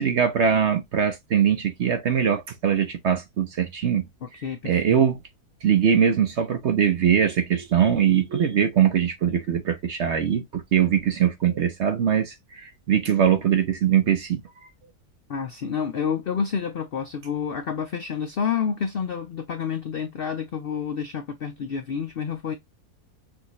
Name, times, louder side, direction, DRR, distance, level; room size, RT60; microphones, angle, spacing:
voice 1, 0.0-4.1 4.6-5.2 5.6-14.4, right 8 dB, 60° right, 0.8 m, -22 dB
voice 2, 4.2-5.0 15.3-22.5, left 7 dB, 80° left, 0.5 m, -29 dB
6.1 x 2.6 x 3.0 m
omnidirectional pair, 1.7 m